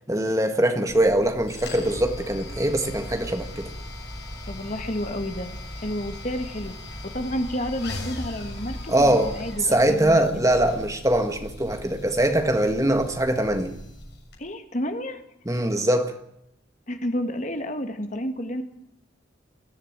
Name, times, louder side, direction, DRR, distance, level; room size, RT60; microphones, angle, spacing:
voice 1, 0.1-3.7 8.9-9.3 9.6-13.7 15.5-16.1, right 1 dB, 15° right, 6 dB, 1.7 m, -22 dB
sound 1, 0.9-14.4, left 1 dB, 55° left, 6.7 m, -38 dB
voice 2, 4.5-6.8 7.0-10.4 14.4-15.2 16.9-18.6, equal, 40° left, 7 dB, 1.9 m, -30 dB
21.5 x 14.5 x 9.0 m, 0.79 s
head